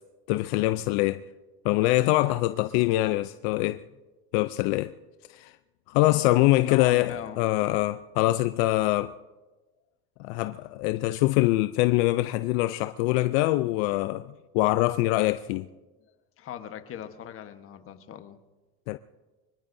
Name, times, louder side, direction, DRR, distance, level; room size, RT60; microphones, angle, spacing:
voice 1, 0.3-1.2 1.6-3.8 4.3-4.9 5.3-5.5 5.9-9.1 10.2-15.7 18.9-19.0, left 17 dB, 70° left, 0.5 m, -24 dB
voice 2, 6.6-7.4 16.4-18.4, left 10 dB, 40° left, 1.3 m, -39 dB
24.5 x 21.0 x 2.7 m
supercardioid pair, 125°, 34 cm